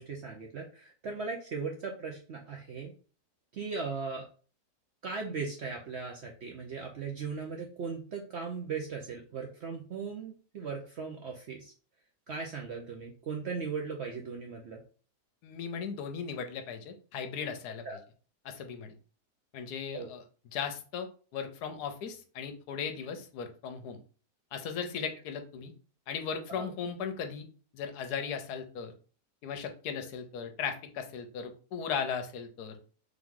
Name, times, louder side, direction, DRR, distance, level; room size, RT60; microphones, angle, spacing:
voice 1, 0.0-2.9 3.5-4.2 5.0-11.7 12.3-14.8 17.8-18.0 19.9-20.1 26.6-26.7, right 5 dB, 65° right, 1 dB, 0.7 m, -38 dB
voice 2, 15.4-17.8 18.4-18.9 19.5-20.2 20.5-24.0 24.5-25.7 26.1-27.5 27.7-28.9 29.4-32.8, left 6 dB, 80° left, 7 dB, 1.2 m, -37 dB
3.5 x 3.0 x 3.6 m, 0.39 s
omnidirectional pair, 1.7 m